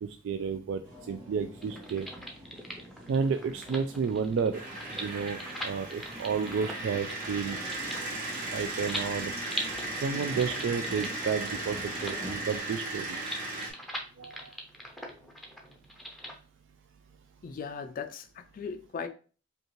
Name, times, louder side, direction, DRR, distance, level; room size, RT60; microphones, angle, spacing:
voice 1, 0.0-2.1 3.1-4.6 5.0-7.6 8.5-9.3 10.0-13.5 14.2-14.5, right 5 dB, 65° right, 0.3 m, -31 dB
sound 1, 0.8-12.6, equal, 15° right, 1.7 m, -47 dB
sound 2, 1.6-16.4, equal, ahead, 0.6 m, -42 dB
sound 3, 4.5-13.7, right 2 dB, 45° right, 1.1 m, -36 dB
voice 2, 17.4-19.1, left 5 dB, 45° left, 0.3 m, -38 dB
5.1 x 2.4 x 3.0 m
head